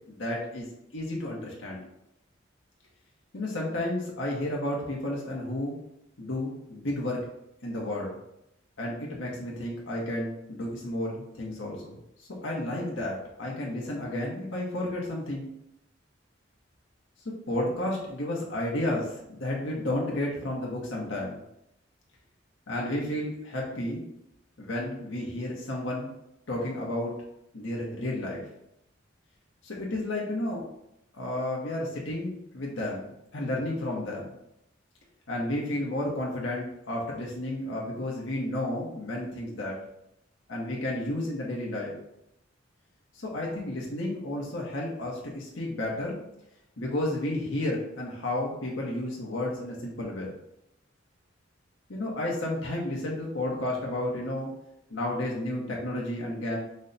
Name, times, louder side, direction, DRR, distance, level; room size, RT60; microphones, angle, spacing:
voice 1, 0.1-0.7 0.9-1.8 3.3-5.8 6.2-7.2 7.6-8.1 8.8-15.5 17.5-21.4 22.7-24.0 24.6-26.1 26.5-27.1 27.5-28.4 29.6-30.6 31.1-34.3 35.3-39.8 40.5-41.9 43.1-46.2 46.8-50.3 51.9-54.5 54.9-56.6, left 1 dB, 75° left, -3 dB, 0.9 m, -32 dB
5.3 x 2.2 x 3.9 m, 0.81 s
head